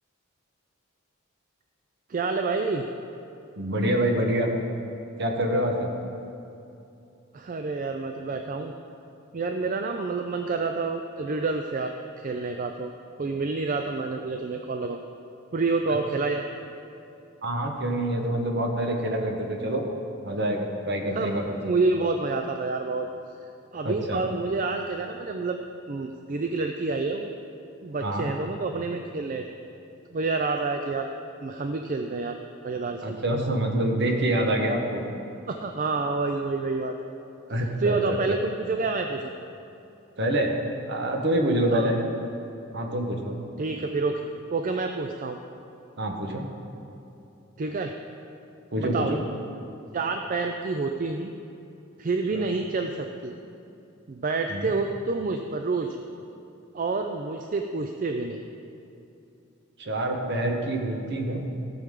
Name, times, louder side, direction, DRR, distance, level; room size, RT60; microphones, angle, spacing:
voice 1, 2.1-2.8 7.3-8.7 9.3-12.9 13.2-15.0 15.5-16.4 21.1-23.1 23.7-25.6 25.9-27.3 27.8-29.4 30.1-31.1 31.4-32.4 32.6-33.2 35.5-36.9 37.8-39.3 41.7-41.9 43.6-44.2 44.5-45.4 47.6-47.9 48.8-49.2 49.9-51.3 52.0-53.4 54.1-56.0 56.7-58.4, right 3 dB, 40° right, 5 dB, 0.4 m, -28 dB
voice 2, 3.5-4.5 5.2-5.9 17.4-19.8 20.2-21.6 23.8-24.2 28.0-28.3 33.0-35.0 37.5-38.0 38.3-38.4 40.2-40.6 40.9-42.0 42.7-43.4 46.0-46.5 48.7-49.2 52.3-52.5 54.5-54.7 59.8-61.5, right 1 dB, 55° right, 2 dB, 1.1 m, -26 dB
15.0 x 7.0 x 3.7 m, 2.7 s
head